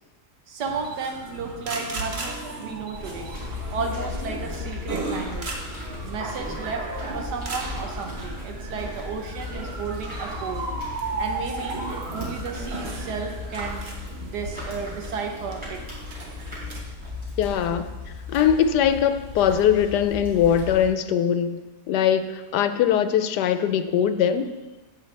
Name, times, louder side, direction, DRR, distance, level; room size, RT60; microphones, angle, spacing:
voice 1, 0.5-3.3 3.7-5.6 6.0-10.7 11.2-11.8 12.1-13.8 14.2-15.9, right 5 dB, 80° right, 4 dB, 1.5 m, -33 dB
sound 1, 0.6-16.8, right 3 dB, 40° right, 1.3 m, -35 dB
sound 2, 2.9-20.9, left 3 dB, 15° right, 3.7 m, -36 dB
voice 2, 17.4-17.9 18.3-24.5, left 9 dB, 85° left, 11 dB, 1.2 m, -21 dB
16.0 x 5.5 x 3.3 m, 1.2 s
omnidirectional pair, 1.7 m